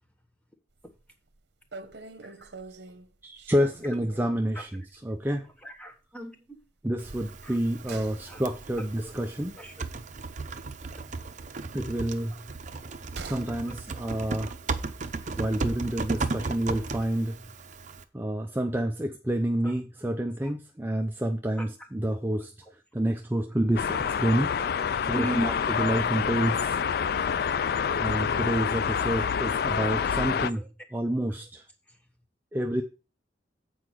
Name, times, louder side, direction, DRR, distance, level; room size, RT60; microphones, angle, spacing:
sound 1, 0.8-1.1 1.3-1.4 1.7-4.4 4.8-4.9 5.2-5.3 7.0-10.9 11.2-13.6 13.9-14.0, right 3 dB, 75° right, 0.9 m, -46 dB
voice 1, 3.2-5.4 6.8-9.5 11.7-12.3 13.3-14.5 15.4-17.3 18.1-22.5 22.9-24.5 25.0-26.8 28.0-30.6 30.9-31.6 32.5-32.8, right 1 dB, 10° right, 0.5 m, -28 dB
voice 2, 5.6-6.6 7.4-7.6 7.9-8.0 8.3-8.4 8.8-8.9 9.5-9.9 13.7-13.8 19.6-19.7 20.4-20.5 21.6-21.7 22.6-22.7 23.9-24.0 24.6-24.7 25.1-25.7 30.5-30.7 31.9-32.0, right 1 dB, 5° left, 1.3 m, -38 dB
Typing, 7.0-18.0, right 3 dB, 45° right, 0.7 m, -36 dB
sound 2, 23.8-30.5, left 7 dB, 60° left, 0.4 m, -27 dB
8.0 x 4.6 x 6.3 m
head